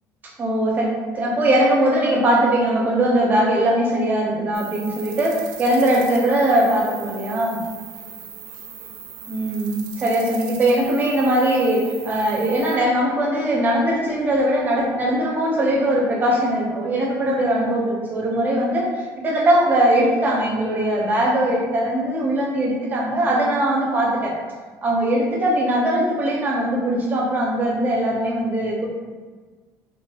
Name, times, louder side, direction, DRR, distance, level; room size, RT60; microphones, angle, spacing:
voice 1, 0.4-7.6 9.3-24.3 24.8-28.9, right 1 dB, 25° right, -3 dB, 0.5 m, -20 dB
sound 1, 4.5-12.8, right 7 dB, 80° right, 0.4 m, -39 dB
3.2 x 2.4 x 2.2 m, 1.4 s
cardioid pair, 165°, 8 cm